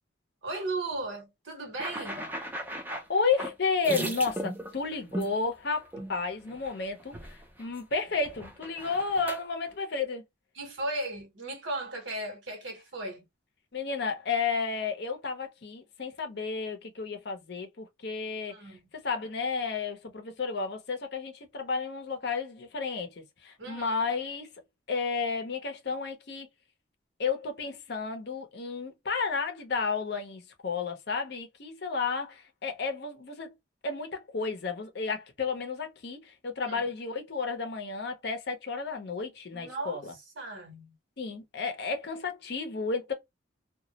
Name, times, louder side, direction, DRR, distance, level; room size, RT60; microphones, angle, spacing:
voice 1, 0.4-2.3 10.5-13.2 18.5-18.8 23.6-24.0 36.6-36.8 39.5-40.0 40.4-41.0, right 2 dB, 70° right, 1.0 m, -36 dB
sound 1, 1.8-5.3 5.9-6.1 6.5-6.7 7.0-7.8 8.1-9.4, right 1 dB, 10° right, 0.4 m, -37 dB
voice 2, 3.1-10.2 13.7-18.6 18.9-24.5 24.9-26.5 27.2-33.5 33.8-40.1 41.2-43.1, left 4 dB, 55° left, 0.6 m, -32 dB
2.3 x 2.0 x 2.7 m
head